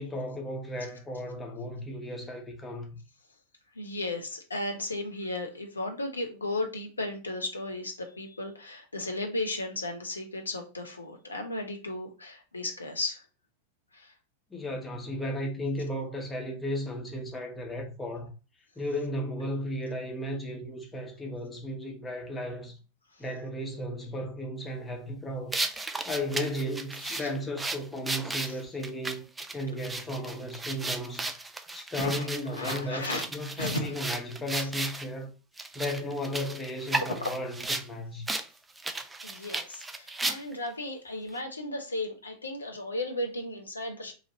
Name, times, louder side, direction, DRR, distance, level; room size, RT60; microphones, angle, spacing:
voice 1, 0.0-3.0 14.5-18.3 18.8-22.8 23.2-25.7 26.1-29.2 29.5-31.3 31.7-35.3 35.7-38.3, equal, 15° left, 1.0 m, -35 dB
voice 2, 3.8-13.2 13.9-14.1 27.1-27.3 32.0-32.3 32.6-33.2 33.6-33.9 37.2-37.3 39.2-44.1, left 2 dB, 80° left, 0.8 m, -35 dB
sound 1, 25.5-35.1 35.6-37.9 38.3-38.5 38.8-40.7, right 2 dB, 10° right, 0.3 m, -34 dB
3.1 x 2.5 x 3.9 m
figure-of-eight pair, 90°, 0 cm